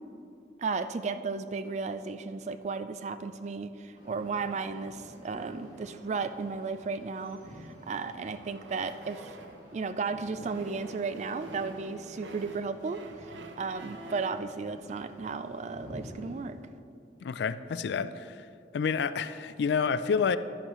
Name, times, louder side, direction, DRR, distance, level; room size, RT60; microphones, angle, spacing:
voice 1, 0.6-7.4 7.9-9.3 9.7-16.6, right 4 dB, 40° right, 12 dB, 0.3 m, -34 dB
sound 1, 3.9-16.4, equal, 20° right, 2.4 m, -50 dB
sound 2, 5.5-9.7 10.2-14.5, right 2 dB, 80° right, 0.8 m, -49 dB
voice 2, 17.2-18.5 18.7-20.4, left 6 dB, 65° left, 14 dB, 0.3 m, -29 dB
11.0 x 9.9 x 3.1 m, 2.5 s
head